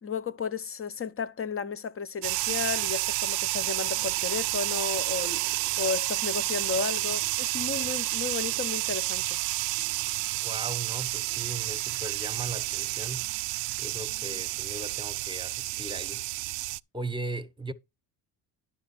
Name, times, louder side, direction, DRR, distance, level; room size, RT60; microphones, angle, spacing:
voice 1, 0.0-9.4, left 5 dB, 25° left, 0.9 m, -33 dB
sound 1, 2.2-16.8, right 22 dB, 90° right, 0.6 m, -30 dB
voice 2, 10.3-13.3 13.8-16.2 16.9-17.7, right 2 dB, 10° right, 1.2 m, -38 dB
10.5 x 6.1 x 4.4 m
supercardioid pair, 90°, 50 cm